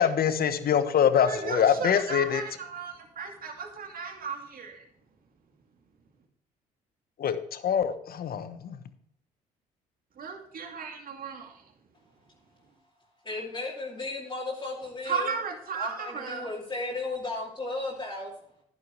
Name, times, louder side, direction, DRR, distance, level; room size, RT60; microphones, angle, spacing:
voice 1, 0.0-2.4 7.2-8.8, left 8 dB, 55° left, 11 dB, 1.2 m, -24 dB
voice 2, 1.2-4.8 10.2-11.6 15.0-16.5, right 6 dB, 50° right, 3 dB, 2.4 m, -35 dB
voice 3, 13.2-15.3 15.7-18.3, left 2 dB, 25° left, -5 dB, 2.9 m, -35 dB
11.0 x 10.5 x 3.2 m, 0.71 s
hypercardioid pair, 55°, 18 cm